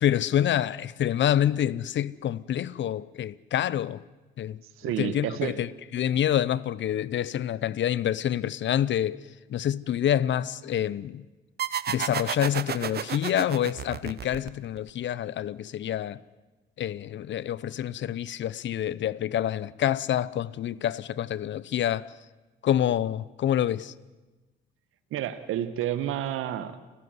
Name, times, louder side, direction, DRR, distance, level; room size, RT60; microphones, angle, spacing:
voice 1, 0.0-4.0 4.4-4.6 5.0-9.2 9.5-11.2 11.9-16.2 16.8-22.1 22.6-23.9, left 10 dB, 60° left, 0.9 m, -27 dB
voice 2, 4.8-5.6 25.1-26.8, right 11 dB, 80° right, 1.6 m, -30 dB
sound 1, 11.6-14.9, right 9 dB, 50° right, 0.9 m, -32 dB
29.5 x 13.5 x 9.6 m
cardioid pair, 85°, 21 cm